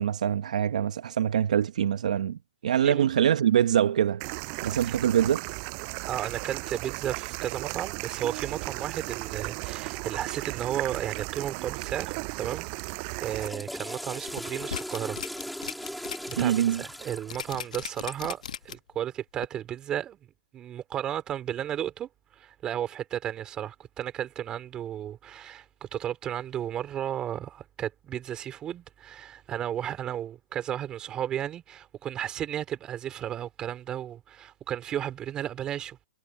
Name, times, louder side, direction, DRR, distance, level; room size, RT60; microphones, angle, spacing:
voice 1, 0.0-4.2 4.6-5.4 16.4-16.8, right 9 dB, 70° right, 1.0 m, -24 dB
sound 1, 4.2-13.5, right 40 dB or more, 35° right, 7.6 m, -35 dB
voice 2, 6.1-15.2 16.3-20.2 20.5-22.1 22.4-36.1, right 10 dB, 20° right, 4.2 m, -34 dB
Water / Toilet flush, 13.1-18.4, equal, ahead, 2.0 m, -39 dB
sound 2, 14.3-16.3 16.7-16.8 17.3-19.0 19.4-19.5, left 8 dB, 90° left, 1.2 m, -37 dB
hypercardioid pair, 155°, 4 cm